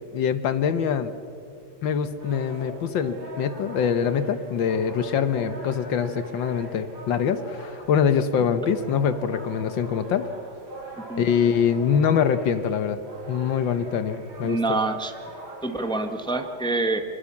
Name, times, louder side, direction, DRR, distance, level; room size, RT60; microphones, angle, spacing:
voice 1, 0.1-1.1 1.8-10.3 11.2-13.0 13.3-14.8, left 7 dB, 65° left, 12 dB, 1.6 m, -24 dB
sound 1, 2.2-16.4, right 1 dB, 60° right, 7.0 m, -42 dB
voice 2, 14.4-15.1 15.6-17.0, right 3 dB, 5° left, 6 dB, 0.6 m, -26 dB
24.5 x 20.5 x 7.2 m, 2.5 s
omnidirectional pair, 2.4 m